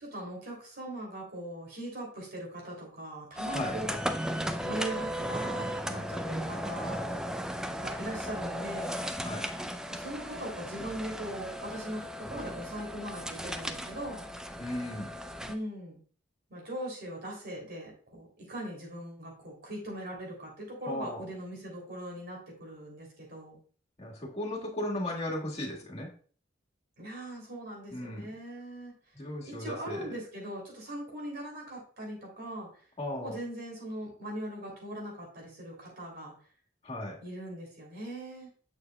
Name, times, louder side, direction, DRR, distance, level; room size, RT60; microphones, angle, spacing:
voice 1, 0.0-4.0 4.6-7.1 7.8-8.9 9.9-14.2 15.5-16.0 16.5-23.6 27.0-28.9 29.4-32.7 33.2-36.3 37.2-38.5, right 1 dB, 55° right, -1 dB, 3.0 m, -40 dB
sound 1, 3.4-15.5, equal, 5° right, 0.4 m, -36 dB
voice 2, 14.6-15.2 20.9-21.2 24.0-26.1 27.9-28.3 29.1-30.1 33.0-33.4 36.8-37.2, left 1 dB, 35° left, -2 dB, 1.7 m, -36 dB
6.7 x 6.5 x 2.3 m, 0.43 s
head